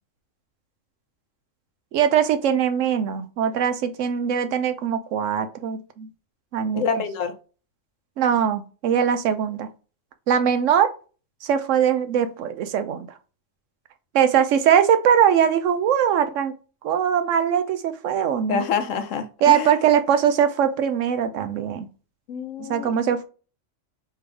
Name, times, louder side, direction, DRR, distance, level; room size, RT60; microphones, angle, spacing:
voice 1, 1.9-6.1 6.5-6.9 8.2-9.7 10.3-10.9 11.4-13.1 14.1-16.5 16.8-18.6 19.4-21.9 22.6-23.2, right 8 dB, 75° right, 1.0 m, -21 dB
voice 2, 6.8-7.4 18.5-19.7 22.3-22.9, left 6 dB, 75° left, 1.0 m, -26 dB
3.4 x 3.3 x 3.3 m
omnidirectional pair, 1.3 m